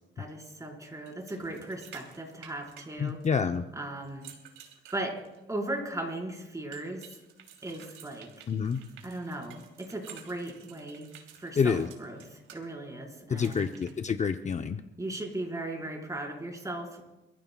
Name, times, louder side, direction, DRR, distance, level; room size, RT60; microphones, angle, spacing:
voice 1, 0.2-3.2 3.7-4.3 4.9-5.2 5.5-7.2 7.6-8.3 9.0-11.1 11.4-13.7 15.0-17.0, right 1 dB, 15° right, 0 dB, 4.6 m, -37 dB
sound 1, 1.1-3.6 4.0-5.5 6.7-12.6 13.4-13.9, right 9 dB, 90° right, 3.1 m, -52 dB
voice 2, 3.0-3.6 8.5-8.8 11.6-11.9 13.3-14.8, left 6 dB, 35° left, 7 dB, 0.7 m, -28 dB
29.0 x 15.0 x 2.3 m, 1.0 s
cardioid pair, 90°, 20 cm